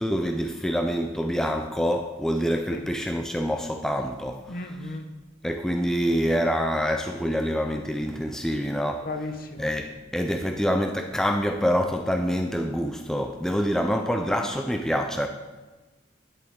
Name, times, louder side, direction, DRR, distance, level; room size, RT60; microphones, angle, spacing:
voice 1, 0.0-4.6 5.4-9.1 9.6-15.3, equal, 5° left, 4 dB, 0.4 m, -26 dB
voice 2, 4.5-5.1 9.0-9.7, left 2 dB, 50° left, 7 dB, 0.8 m, -34 dB
10.0 x 8.0 x 3.6 m, 1.2 s
head